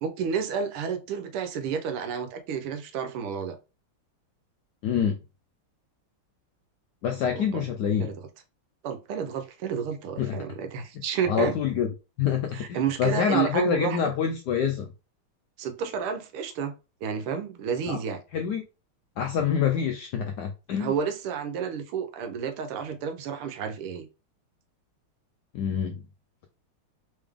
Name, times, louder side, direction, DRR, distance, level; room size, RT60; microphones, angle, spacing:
voice 1, 0.0-3.6 7.3-7.6 8.0-8.2 8.8-11.6 12.5-14.1 15.6-16.7 17.0-18.2 20.8-24.1, right 7 dB, 85° right, 1.6 m, -30 dB
voice 2, 4.8-5.2 7.0-8.1 10.2-10.3 11.3-11.9 12.2-14.9 17.9-18.0 18.3-18.6 19.2-20.9 25.5-26.0, left 7 dB, 80° left, 0.9 m, -26 dB
3.9 x 3.5 x 3.4 m
omnidirectional pair, 2.3 m